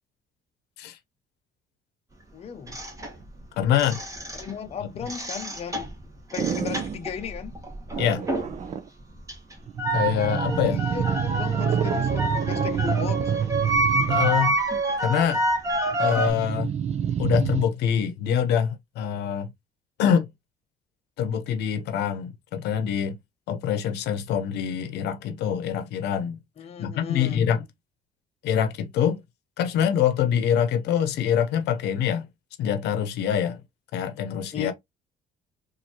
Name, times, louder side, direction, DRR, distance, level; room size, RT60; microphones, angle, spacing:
voice 1, 2.3-2.8 4.3-6.0 6.3-7.5 10.6-13.2 26.6-27.5 34.5-34.7, left 7 dB, 35° left, 0.7 m, -35 dB
sound 1, 2.7-4.7 5.0-8.7 9.0-16.3, right 1 dB, 20° right, 1.4 m, -28 dB
voice 2, 3.6-4.0 8.0-8.2 9.9-10.8 14.1-14.5 15.0-15.4 16.0-16.7 17.2-19.5 20.0-20.3 21.2-23.2 23.5-26.4 26.8-27.7 28.4-29.2 29.6-32.3 32.6-33.6 33.9-34.7, left 9 dB, 80° left, 0.8 m, -25 dB
sound 2, 6.4-7.0 7.9-8.9 9.7-14.6 15.9-17.7, right 8 dB, 40° right, 0.6 m, -27 dB
4.4 x 2.7 x 2.9 m
cardioid pair, 110°, 17 cm